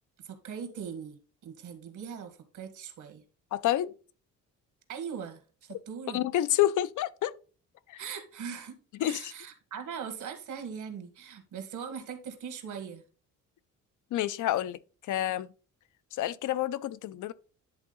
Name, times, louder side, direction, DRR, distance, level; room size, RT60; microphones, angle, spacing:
voice 1, 0.2-3.2 4.9-6.3 8.0-13.0, right 7 dB, 70° right, 1.7 m, -40 dB
voice 2, 3.5-3.9 6.1-7.3 7.9-8.0 9.0-9.3 14.1-14.8 15.1-15.5 16.1-17.3, left 13 dB, 70° left, 0.6 m, -28 dB
10.5 x 3.7 x 3.9 m
cardioid pair, 125°, 32 cm